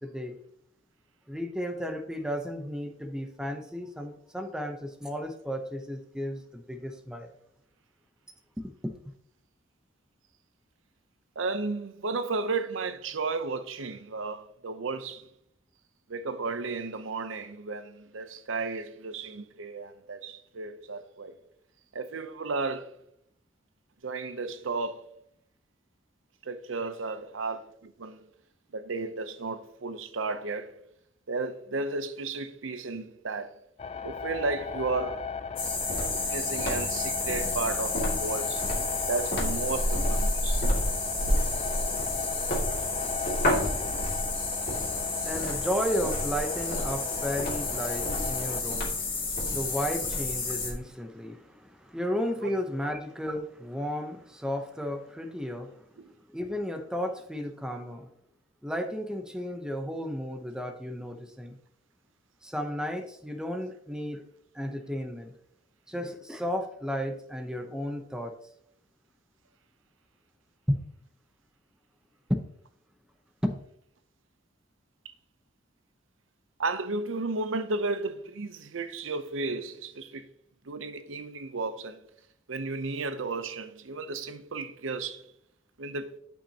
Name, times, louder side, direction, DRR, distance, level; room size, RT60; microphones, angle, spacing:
voice 1, 0.0-0.4 1.3-7.3 8.6-9.1 44.6-55.9 56.3-58.1 58.6-61.6 62.4-64.3 64.5-65.3 65.9-68.4 70.7-70.8 72.3-72.4 73.4-73.6, equal, 5° right, 0.7 m, -33 dB
voice 2, 11.4-15.3 16.1-21.3 21.9-22.9 24.0-25.1 26.4-28.2 28.7-30.7 31.3-33.5 34.0-35.2 36.1-38.6 39.0-40.6 52.4-52.5 56.0-56.1 76.6-80.3 80.7-82.0 82.5-85.2 85.8-86.1, right 3 dB, 85° right, 0.7 m, -33 dB
sound 1, 33.8-48.6, left 5 dB, 30° left, 0.3 m, -37 dB
sound 2, 35.6-50.7, left 2 dB, 50° left, 2.3 m, -29 dB
11.5 x 5.7 x 2.9 m
head